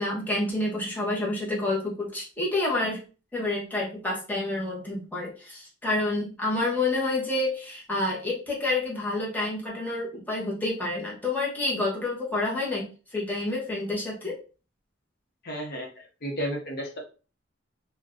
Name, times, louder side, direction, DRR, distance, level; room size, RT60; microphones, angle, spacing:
voice 1, 0.0-3.0 3.3-14.4, left 2 dB, 10° left, -4 dB, 0.8 m, -28 dB
voice 2, 15.4-15.9 16.2-17.0, equal, 55° left, 0 dB, 0.8 m, -32 dB
2.5 x 2.2 x 3.6 m, 0.35 s
head